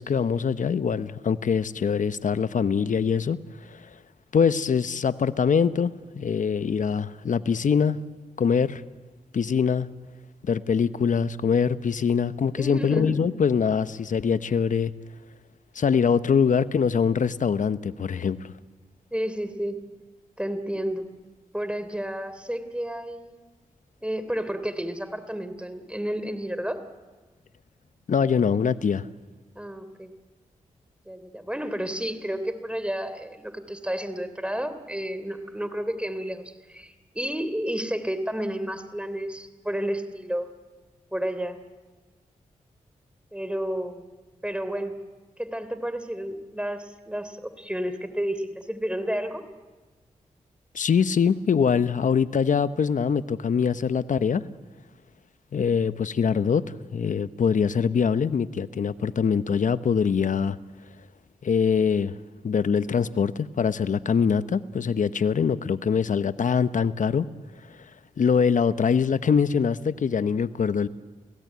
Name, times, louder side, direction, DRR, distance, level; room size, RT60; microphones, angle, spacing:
voice 1, 0.0-3.4 3.7-3.8 4.3-8.0 8.4-8.8 9.3-9.9 10.4-14.9 15.7-18.5 28.1-29.1 50.7-54.4 55.5-56.6 56.9-60.6 61.4-62.1 62.4-67.3 68.2-70.9, left 6 dB, 65° left, 14 dB, 0.9 m, -23 dB
voice 2, 12.6-13.2 19.1-19.8 20.4-21.0 21.5-23.4 24.0-26.8 29.5-30.1 31.1-36.4 36.7-40.5 41.1-41.6 43.3-44.0 44.4-44.9 45.4-49.4, equal, 10° right, 11 dB, 3.2 m, -31 dB
29.0 x 16.5 x 9.4 m, 1.3 s
supercardioid pair, 45°, 14 cm